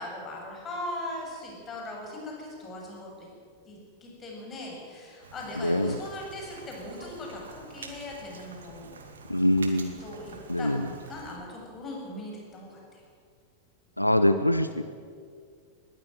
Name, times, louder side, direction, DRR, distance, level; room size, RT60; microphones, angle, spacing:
voice 1, 0.0-3.3 3.6-8.9 10.0-13.0, left 1 dB, 25° left, -1 dB, 7.7 m, -39 dB
Rain, 5.2-11.4, right 4 dB, 65° right, 2.5 m, -47 dB
voice 2, 5.6-5.9 9.3-9.9 10.5-10.8 14.0-14.8, left 1 dB, 85° left, 11 dB, 0.7 m, -23 dB
21.0 x 16.0 x 9.2 m, 2.2 s
figure-of-eight pair, 90°, 0 cm